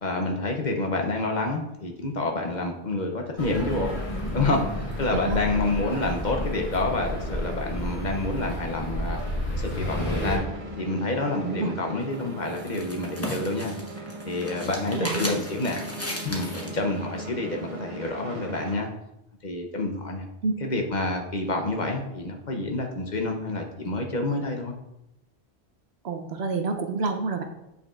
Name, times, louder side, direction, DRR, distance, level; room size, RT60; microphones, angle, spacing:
voice 1, 0.0-4.0 4.3-9.2 9.5-10.5 10.8-13.7 14.2-15.8 16.2-18.9 19.4-20.2 20.6-24.7, left 2 dB, 50° left, 2 dB, 0.7 m, -28 dB
sound 1, 3.4-10.4, equal, 30° left, 1.3 m, -31 dB
sound 2, 9.8-18.8, right 1 dB, 35° right, 0.8 m, -39 dB
voice 2, 11.4-11.7 14.9-15.3 20.4-20.5 26.0-27.4, right 4 dB, 75° right, 6 dB, 1.0 m, -28 dB
sound 3, 12.0-16.8, left 1 dB, 15° left, 0.8 m, -36 dB
8.1 x 4.9 x 2.4 m, 0.87 s
omnidirectional pair, 1.1 m